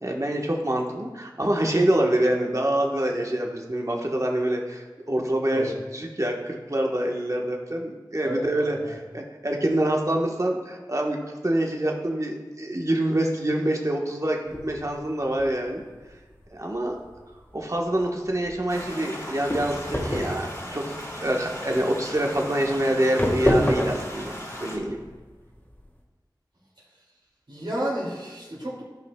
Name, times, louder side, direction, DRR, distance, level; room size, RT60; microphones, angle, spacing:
voice 1, 0.0-11.2 11.4-15.8 16.5-17.0 17.5-25.0, right 1 dB, 40° right, 0 dB, 1.3 m, -26 dB
sound 1, 14.4-25.9, equal, 20° left, 1.6 m, -30 dB
sound 2, 18.7-24.8, equal, 40° left, 2.0 m, -37 dB
voice 2, 27.5-28.8, equal, 75° right, -6 dB, 2.4 m, -30 dB
14.5 x 5.5 x 2.3 m, 1.3 s
wide cardioid pair, 45°, 8 cm